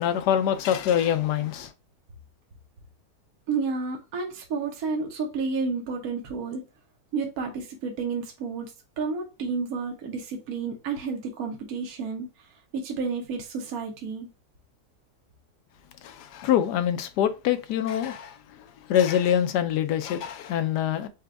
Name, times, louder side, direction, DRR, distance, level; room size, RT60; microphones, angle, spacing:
voice 1, 0.0-1.7 16.0-18.4 18.9-21.1, left 10 dB, 85° left, 1.2 m, -24 dB
voice 2, 3.5-6.6 7.1-8.7 9.0-12.5 12.7-14.3, right 4 dB, 65° right, 1.3 m, -31 dB
5.0 x 2.3 x 4.5 m
omnidirectional pair, 1.7 m